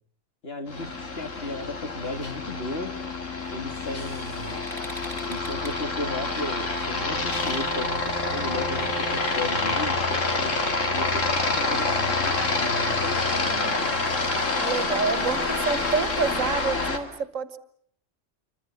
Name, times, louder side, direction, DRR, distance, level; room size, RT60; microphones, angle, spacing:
voice 1, 0.4-3.0 3.5-4.7 5.3-10.6 10.9-13.6, left 2 dB, 50° left, 6 dB, 2.6 m, -35 dB
Aircraft, 0.7-17.0, left 3 dB, 80° left, 2.8 m, -27 dB
sound 1, 3.4-9.0, equal, ahead, 5.6 m, -45 dB
voice 2, 13.3-13.9 14.6-17.6, right 5 dB, 90° right, 13 dB, 1.7 m, -28 dB
28.0 x 25.0 x 7.3 m, 0.68 s
omnidirectional pair, 1.3 m